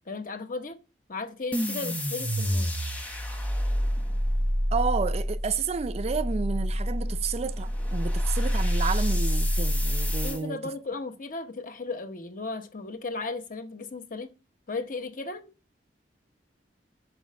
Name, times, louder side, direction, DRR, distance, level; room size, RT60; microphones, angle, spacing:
voice 1, 0.1-0.8 1.1-2.7 10.2-14.3 14.7-15.5, left 3 dB, 50° left, 1.0 m, -35 dB
sound 1, 1.5-10.4, equal, 10° left, 1.1 m, -27 dB
voice 2, 4.7-10.6, right 5 dB, 35° right, 0.4 m, -31 dB
6.2 x 5.0 x 6.3 m
head